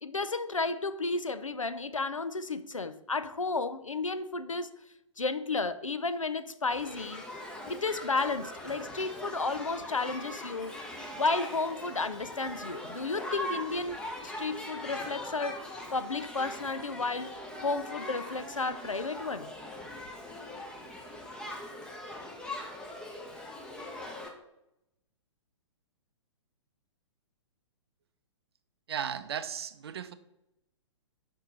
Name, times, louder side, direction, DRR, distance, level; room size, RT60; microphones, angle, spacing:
voice 1, 0.0-4.7 5.2-7.2 7.6-10.9 11.2-17.3 17.6-19.5, left 3 dB, 85° left, 0.4 m, -32 dB
Shout / Human group actions, 6.7-24.3, left 1 dB, 5° left, 0.7 m, -41 dB
voice 2, 28.9-30.1, right 8 dB, 55° right, 0.5 m, -35 dB
5.3 x 4.4 x 5.1 m
figure-of-eight pair, 115°, 16 cm